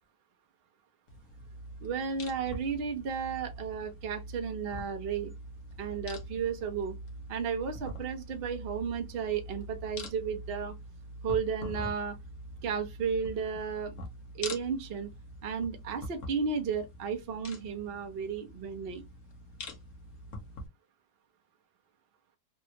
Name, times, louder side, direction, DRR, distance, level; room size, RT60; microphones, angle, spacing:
sound 1, 1.1-20.7, equal, 55° left, 1.1 m, -44 dB
voice 1, 1.8-5.3 5.8-7.0 7.3-10.7 11.2-12.2 12.6-13.9 14.3-15.1 15.4-19.0, right 6 dB, 60° right, 0.6 m, -33 dB
3.5 x 2.2 x 2.8 m
omnidirectional pair, 1.9 m